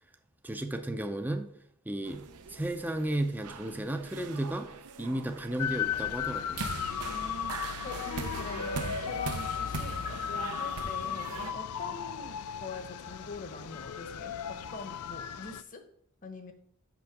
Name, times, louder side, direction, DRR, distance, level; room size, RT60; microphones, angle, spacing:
voice 1, 0.4-1.5 1.9-2.2 2.5-4.7 5.0-6.7, right 1 dB, 10° right, 7 dB, 0.5 m, -33 dB
sound 1, 2.0-11.5, right 5 dB, 85° right, 0.7 m, -41 dB
sound 2, 5.6-15.6, left 8 dB, 80° left, 0.4 m, -36 dB
voice 2, 7.0-10.0 10.3-15.9 16.2-16.5, left 3 dB, 35° left, 7 dB, 0.9 m, -44 dB
6.1 x 5.6 x 5.9 m, 0.70 s
head